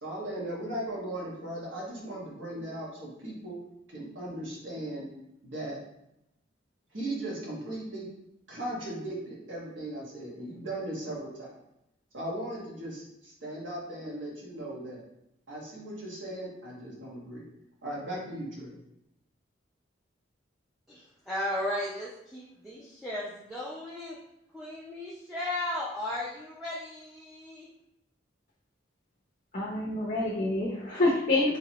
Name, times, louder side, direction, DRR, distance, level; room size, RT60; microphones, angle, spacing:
voice 1, 0.0-3.6 3.9-5.1 5.4-5.8 6.9-8.1 8.5-11.5 12.1-15.0 15.5-17.4 17.8-18.8, right 1 dB, 75° right, -5 dB, 1.4 m, -37 dB
voice 2, 20.9-24.2 24.5-27.7, left 1 dB, ahead, -7 dB, 0.5 m, -35 dB
voice 3, 29.5-31.6, left 2 dB, 40° left, -6 dB, 0.8 m, -27 dB
4.3 x 3.0 x 2.9 m, 0.82 s
head